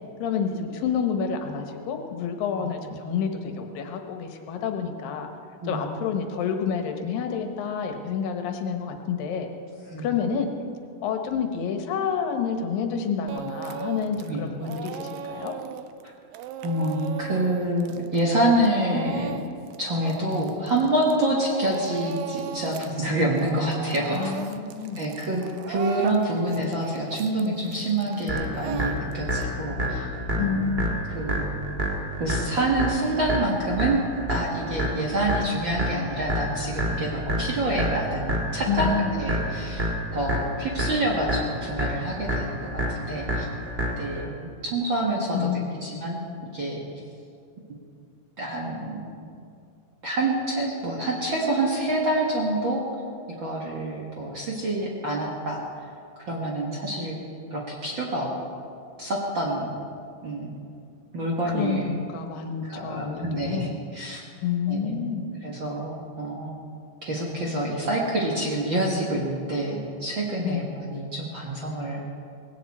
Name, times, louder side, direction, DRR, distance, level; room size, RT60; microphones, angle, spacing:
voice 1, 0.2-5.3 5.6-9.5 10.0-10.5 11.0-15.5 24.1-25.0 30.4-30.9 38.7-39.1 45.3-45.8 61.5-63.8 64.4-65.3 70.4-70.7, left 6 dB, 75° left, 5 dB, 2.8 m, -29 dB
voice 2, 5.6-5.9 9.9-10.1 14.3-14.5 16.0-16.1 16.6-19.4 19.8-24.3 24.9-30.1 30.4-30.6 31.1-31.6 32.2-34.0 34.3-43.4 44.0-45.5 45.8-46.2 46.5-46.8 48.4-49.4 50.0-52.8 53.4-55.6 56.3-57.2 57.5-58.3 59.0-59.7 60.2-60.5 61.1-61.9 62.7-64.2 64.7-65.1 65.4-66.6 67.0-72.0, right 1 dB, 45° right, -3 dB, 1.6 m, -27 dB
Speech / Crying sobbing, 13.3-14.3 14.6-21.2 21.5-22.9 23.2-29.4, right 9 dB, 80° right, 2.3 m, -37 dB
sound 1, 28.3-44.3, equal, 25° right, 1.2 m, -29 dB
18.5 x 17.0 x 4.3 m, 2.5 s
omnidirectional pair, 4.2 m